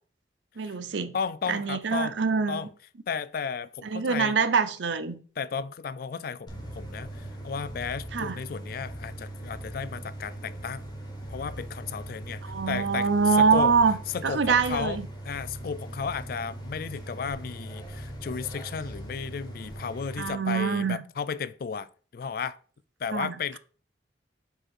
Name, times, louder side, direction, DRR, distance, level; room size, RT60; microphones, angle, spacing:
voice 1, 0.6-1.1 1.5-2.7 3.8-5.1 8.1-8.4 12.4-14.0 14.2-15.1 20.2-21.0 23.1-23.6, right 5 dB, 85° right, 0.6 m, -25 dB
voice 2, 1.1-2.2 2.5-2.7 3.1-4.4 5.4-10.9 11.3-12.4 12.7-13.1 13.4-13.7 14.1-15.0 15.2-22.6 23.0-23.6, left 6 dB, 55° left, 0.3 m, -34 dB
sound 1, 6.5-20.3, right 1 dB, 25° left, 1.4 m, -40 dB
4.9 x 4.4 x 4.6 m
head